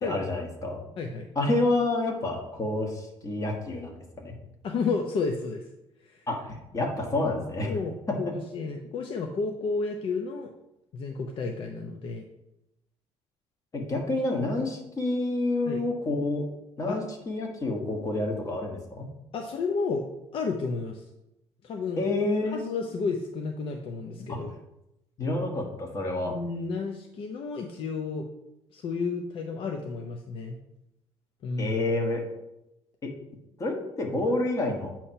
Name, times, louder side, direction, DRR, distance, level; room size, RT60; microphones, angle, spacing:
voice 1, 0.0-0.8 1.3-4.3 6.3-6.4 6.7-7.7 8.1-8.3 13.7-16.5 16.8-19.1 22.0-22.6 24.3-24.4 25.2-26.3 31.6-32.2 33.0-33.1 33.6-34.9, left 2 dB, 30° left, 1 dB, 1.4 m, -28 dB
voice 2, 1.0-1.3 4.6-5.7 6.0-6.2 7.6-10.5 10.9-12.2 15.7-15.8 16.9-17.0 19.3-20.0 20.3-21.0 21.6-22.1 22.5-24.5 26.2-28.3 28.7-30.6 31.4-31.8, left 4 dB, 50° left, 2 dB, 0.6 m, -31 dB
8.3 x 2.9 x 5.6 m, 0.87 s
cardioid pair, 135°, 11 cm